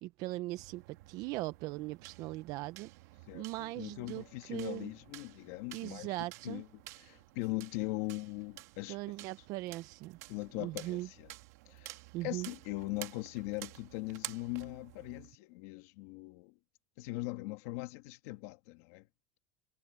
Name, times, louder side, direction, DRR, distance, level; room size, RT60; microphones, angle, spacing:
voice 1, 0.0-2.9 3.3-4.9 5.7-6.6 8.9-10.2 10.6-11.1 12.1-12.5, right 19 dB, 45° right, 0.5 m, -39 dB
sound 1, 0.6-15.3, right 20 dB, 70° right, 1.7 m, -52 dB
voice 2, 3.3-6.1 6.4-6.7 7.0-9.0 10.3-11.3 11.7-16.5 17.0-19.1, left 21 dB, 60° left, 1.8 m, -40 dB
cardioid pair, 170°, 9 cm